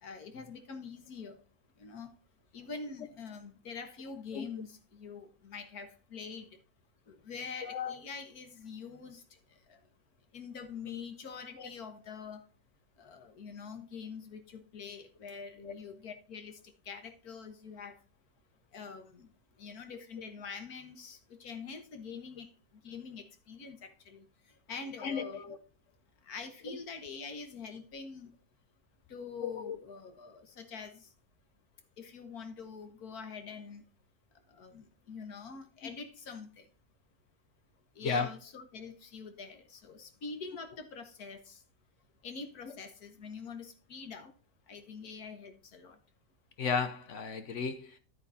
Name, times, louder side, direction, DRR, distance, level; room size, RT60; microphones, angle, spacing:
voice 1, 0.0-1.3 1.8-2.1 2.5-6.5 7.1-9.2 9.7-9.8 10.3-12.4 13.0-16.6 16.9-18.0 18.7-19.3 19.6-22.5 22.8-24.3 24.7-25.4 26.2-28.3 29.1-31.1 32.0-33.8 34.5-36.6 38.0-41.6 42.2-44.3 44.7-46.0, left 5 dB, 80° left, 1.9 m, -45 dB
voice 2, 7.6-7.9 11.6-11.7 15.6-15.8 25.0-25.6 29.4-29.7 38.0-38.3 46.6-48.0, left 5 dB, 60° left, 1.0 m, -34 dB
10.5 x 9.4 x 2.7 m
omnidirectional pair, 1.6 m